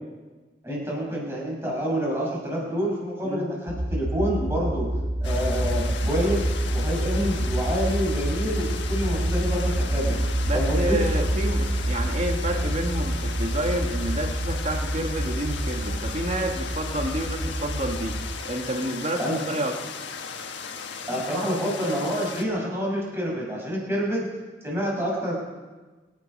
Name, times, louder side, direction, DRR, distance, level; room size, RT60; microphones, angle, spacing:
voice 1, 0.6-4.9 5.2-10.2 10.5-11.0 19.2-19.4 21.1-24.3 24.6-25.3, equal, 15° right, -4 dB, 5.9 m, -27 dB
sound 1, 3.7-18.4, right 1 dB, 70° right, 1.2 m, -27 dB
sound 2, 5.2-22.4, left 5 dB, 75° left, 1.4 m, -37 dB
voice 2, 10.5-18.2 18.4-19.8, right 1 dB, 40° right, 3 dB, 1.7 m, -29 dB
25.0 x 10.5 x 5.4 m, 1.3 s
head